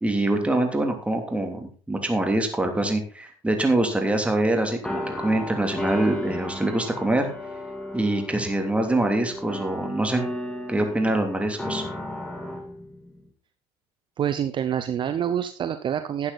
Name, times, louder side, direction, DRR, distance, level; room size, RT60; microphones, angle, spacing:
voice 1, 0.0-7.3 7.9-10.2 10.7-11.8, right 1 dB, 10° right, 4 dB, 3.0 m, -24 dB
sound 1, 4.8-13.3, left 1 dB, 5° left, 3.0 m, -34 dB
voice 2, 14.2-16.3, right 9 dB, 45° right, 10 dB, 0.9 m, -26 dB
12.0 x 8.7 x 4.1 m, 0.41 s
supercardioid pair, 95°, 12 cm